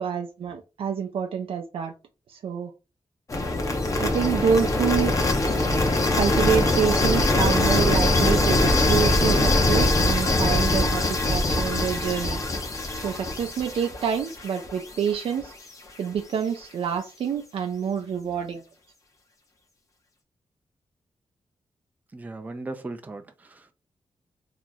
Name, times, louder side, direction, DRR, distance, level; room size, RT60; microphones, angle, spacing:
voice 1, 0.0-1.9 2.3-2.7 4.0-5.2 6.2-12.4 13.0-15.5 16.0-18.6, right 7 dB, 75° right, 0.5 m, -27 dB
sound 1, 3.3-15.2, left 2 dB, 35° left, 0.8 m, -22 dB
voice 2, 22.1-23.7, right 2 dB, 15° right, 0.4 m, -37 dB
2.9 x 2.5 x 3.8 m
wide cardioid pair, 150°, 10 cm